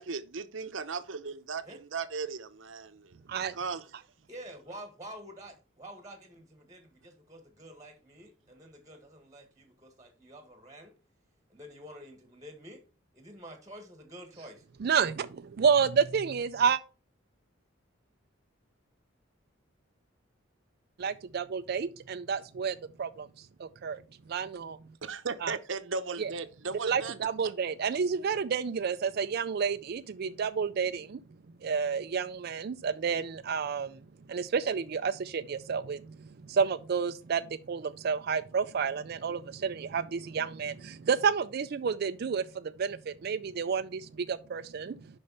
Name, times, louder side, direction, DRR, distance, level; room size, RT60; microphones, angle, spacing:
voice 1, 0.0-1.6 1.9-3.1 3.5-3.8 25.0-27.1, right 4 dB, 65° right, 0.8 m, -36 dB
voice 2, 4.3-10.9 11.5-12.8 13.1-14.6, equal, 15° right, 1.4 m, -48 dB
voice 3, 14.8-16.8 21.0-24.0 24.3-24.8 25.4-25.6 26.2-26.3 26.8-31.2 31.6-34.0 34.3-45.0, right 6 dB, 50° right, 0.4 m, -30 dB
6.6 x 5.4 x 5.4 m
head